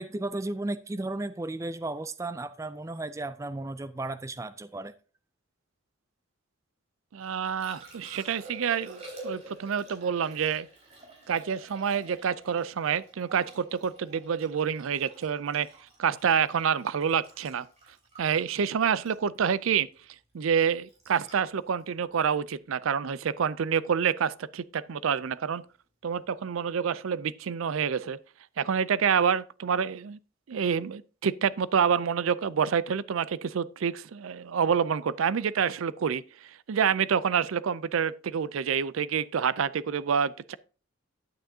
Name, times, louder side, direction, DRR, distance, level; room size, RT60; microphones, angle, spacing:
voice 1, 0.0-4.9, right 2 dB, 15° right, 0.3 m, -34 dB
voice 2, 7.1-10.7 11.3-15.7 16.0-17.7 18.2-19.9 20.3-25.6 26.0-28.2 28.6-30.2 30.5-36.2 36.7-40.5, right 7 dB, 85° right, 0.4 m, -27 dB
Liquid, 7.2-23.3 26.1-26.2, right 1 dB, 30° right, 3.7 m, -49 dB
10.0 x 9.0 x 2.7 m
head